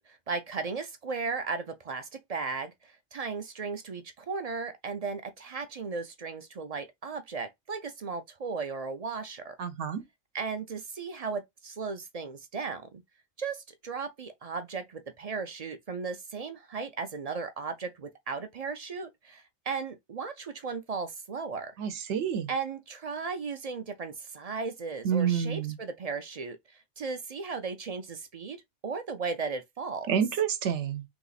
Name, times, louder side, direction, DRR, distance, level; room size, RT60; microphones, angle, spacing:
voice 1, 0.0-9.5 10.3-12.9 13.4-21.7 22.5-26.6 27.0-30.1, right 4 dB, 50° right, 0.4 m, -36 dB
voice 2, 9.6-10.0 21.8-22.5 25.0-25.8 30.1-31.0, right 8 dB, 65° right, 1.0 m, -28 dB
3.5 x 3.0 x 4.0 m
omnidirectional pair, 1.3 m